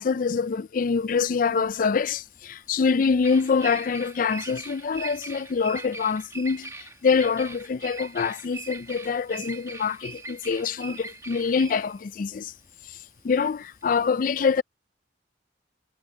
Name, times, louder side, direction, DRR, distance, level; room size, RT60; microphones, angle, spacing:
voice 1, 0.0-12.5 13.2-14.6, left 5 dB, 45° left, 0.4 m, -25 dB
Bird vocalization bird call bird song, 0.8-14.1, right 3 dB, 15° right, 1.1 m, -41 dB
head